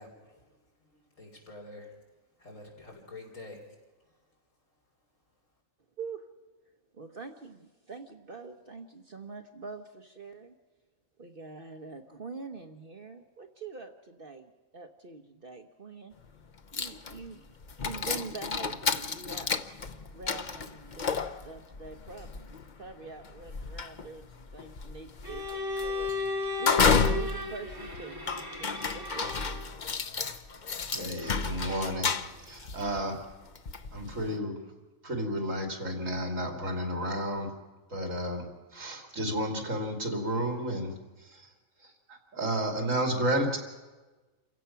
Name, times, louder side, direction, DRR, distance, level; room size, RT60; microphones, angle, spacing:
voice 1, 0.0-2.0 2.4-3.6 4.0-4.2, left 2 dB, 65° left, 4.3 m, -48 dB
voice 2, 6.0-6.3 6.9-10.5 11.2-16.2 16.7-19.5 20.1-28.3 28.6-29.6, right 4 dB, 45° right, 1.1 m, -45 dB
sound 1, 16.2-16.3 16.7-34.4, left 5 dB, 40° left, 0.8 m, -32 dB
Bowed string instrument, 25.2-29.8, left 3 dB, 15° right, 2.4 m, -35 dB
voice 3, 30.9-32.1 32.4-33.2 33.9-34.5 35.0-37.5 37.9-41.5 41.8-43.6, right 1 dB, 65° right, 3.2 m, -32 dB
28.0 x 16.0 x 5.8 m
omnidirectional pair, 1.4 m